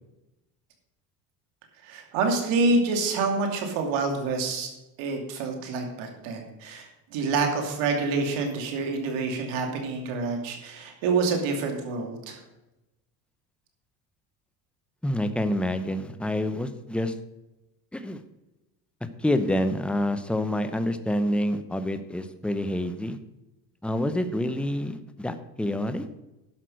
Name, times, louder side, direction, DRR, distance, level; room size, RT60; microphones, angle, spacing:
voice 1, 1.8-4.7 5.0-12.4, right 3 dB, 80° right, 3 dB, 2.7 m, -27 dB
voice 2, 15.0-17.1 17.9-18.2 19.2-23.2 23.8-26.0, left 1 dB, ahead, 10 dB, 0.8 m, -27 dB
11.5 x 5.9 x 6.4 m, 0.98 s
supercardioid pair, 105°, 46 cm